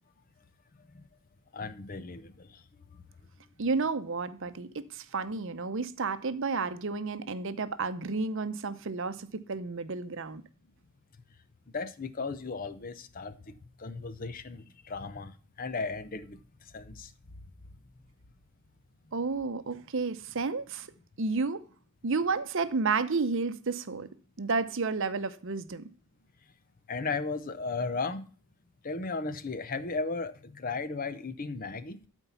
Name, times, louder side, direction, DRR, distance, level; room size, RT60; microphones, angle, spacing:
voice 1, 1.5-2.6 2.9-3.0 11.7-17.1 26.9-28.3 28.8-32.0, left 4 dB, 40° left, 0.6 m, -36 dB
voice 2, 3.6-10.4 19.1-20.9 21.2-21.7 22.0-24.1 24.4-25.8, right 4 dB, 55° right, 0.7 m, -31 dB
12.0 x 4.5 x 5.6 m
head